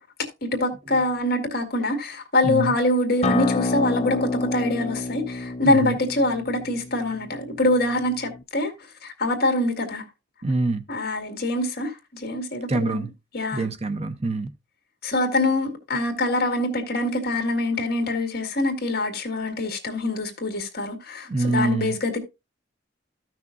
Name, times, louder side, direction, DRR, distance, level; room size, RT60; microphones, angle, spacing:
voice 1, 0.4-8.7 9.0-10.0 10.9-13.1 13.3-13.7 15.0-22.2, left 1 dB, 50° left, 1.9 m, -24 dB
Acoustic guitar, 3.2-8.4, left 2 dB, 30° left, 0.4 m, -28 dB
voice 2, 5.6-6.0 10.4-10.8 12.7-13.1 13.5-14.5 21.3-22.0, right 3 dB, 30° right, 0.6 m, -25 dB
14.0 x 6.1 x 2.5 m
head